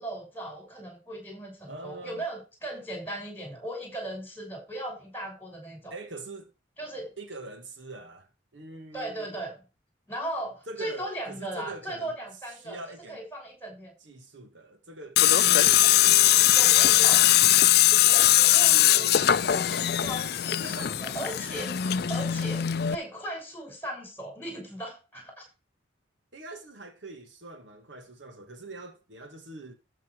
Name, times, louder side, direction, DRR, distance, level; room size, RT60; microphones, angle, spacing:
voice 1, 0.0-6.0 6.8-7.1 8.9-9.6 10.1-12.8 13.1-13.9 15.8-15.9 16.5-17.2 18.1-25.5, right 1 dB, 10° left, 6.2 m, -37 dB
voice 2, 1.7-2.3 5.9-6.5 7.2-9.4 10.7-12.2 12.6-13.2 14.0-18.1 18.7-19.3 20.0-20.1 20.5-21.0 26.3-29.7, right 2 dB, 70° right, 2.0 m, -43 dB
Tools, 15.2-22.9, left 13 dB, 55° left, 0.4 m, -21 dB
13.5 x 6.0 x 4.7 m
head